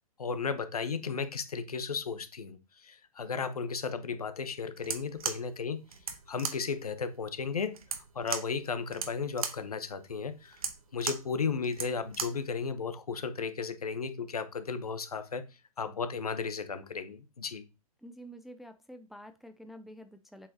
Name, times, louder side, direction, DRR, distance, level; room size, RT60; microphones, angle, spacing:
voice 1, 0.2-5.8 6.3-7.8 8.1-10.6 10.9-15.4 15.8-17.6, left 5 dB, 80° left, 0.9 m, -34 dB
sound 1, 4.8-12.5, right 6 dB, 70° right, 1.0 m, -38 dB
voice 2, 18.0-20.5, equal, ahead, 0.3 m, -48 dB
7.4 x 4.5 x 2.8 m
hypercardioid pair, 120°, 19 cm